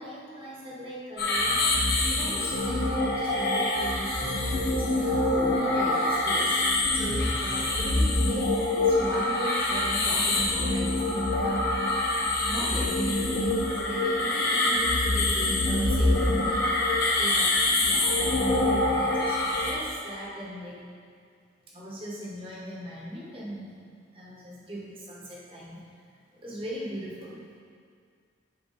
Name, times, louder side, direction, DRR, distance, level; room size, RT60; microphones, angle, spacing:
voice 1, 0.0-1.8 2.1-11.6 12.3-13.5 13.8-17.6 17.8-20.8 21.7-23.7 24.1-25.8 26.4-27.4, equal, 30° right, -5 dB, 1.5 m, -39 dB
sound 1, 1.2-19.7, left 2 dB, 55° left, 1.2 m, -25 dB
10.5 x 4.4 x 4.2 m, 2.1 s
head